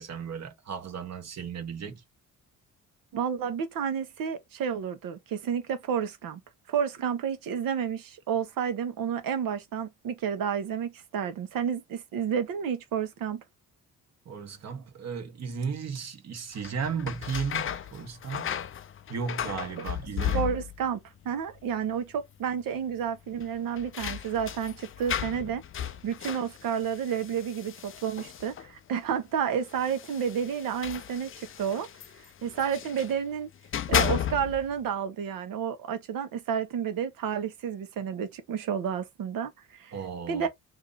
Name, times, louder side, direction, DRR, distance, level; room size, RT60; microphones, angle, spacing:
voice 1, 0.0-2.0 14.2-18.5 19.1-20.5 39.9-40.5, right 6 dB, 50° right, 1.3 m, -35 dB
voice 2, 3.1-6.4 6.7-13.4 19.8-19.9 20.3-25.6 26.0-31.9 32.4-33.5 33.9-39.9 40.3-40.5, right 8 dB, 75° right, 1.1 m, -31 dB
sound 1, 16.5-21.0 21.2-21.9 22.2-22.3 23.4-28.8 29.7-33.2 33.6-34.7, left 9 dB, 40° left, 0.5 m, -34 dB
2.9 x 2.6 x 3.8 m
cardioid pair, 95°, 34 cm